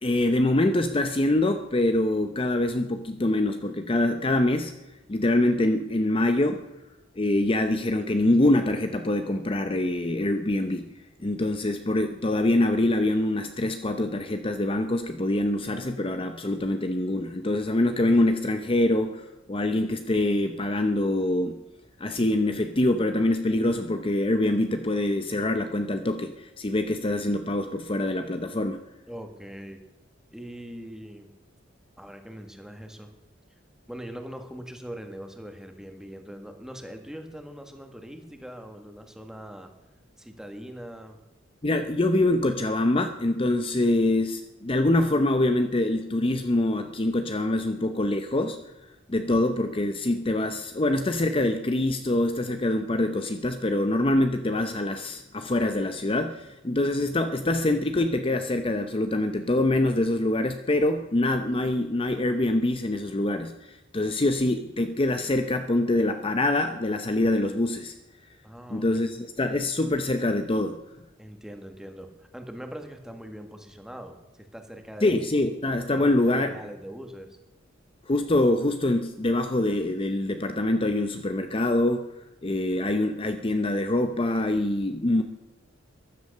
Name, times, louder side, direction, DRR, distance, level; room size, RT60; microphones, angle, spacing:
voice 1, 0.0-4.7 5.1-6.6 7.2-10.8 11.2-21.6 22.0-28.8 41.6-48.6 49.1-67.9 68.7-70.8 75.0-76.6 78.1-85.2, left 1 dB, 30° left, 7 dB, 0.7 m, -25 dB
voice 2, 29.1-29.8 30.3-31.3 32.0-33.1 33.9-39.7 40.2-41.2 68.4-68.9 71.2-75.2 75.9-77.4, equal, 5° right, 6 dB, 1.6 m, -42 dB
14.5 x 11.5 x 6.7 m, 0.99 s
head